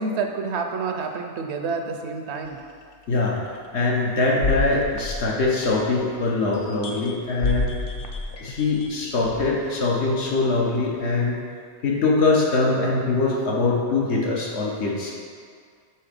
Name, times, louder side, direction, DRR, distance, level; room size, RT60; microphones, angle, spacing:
voice 1, 0.0-2.6, right 4 dB, 80° right, 4 dB, 0.9 m, -28 dB
sound 1, 2.5-2.6 3.2-3.4 4.4-6.1 6.5-9.7 10.4-10.6, left 3 dB, 65° left, 0.7 m, -29 dB
voice 2, 3.1-7.7 8.4-11.4 11.8-15.1, left 3 dB, 80° left, -4 dB, 1.2 m, -23 dB
5.5 x 4.2 x 5.2 m, 2.1 s
omnidirectional pair, 1.1 m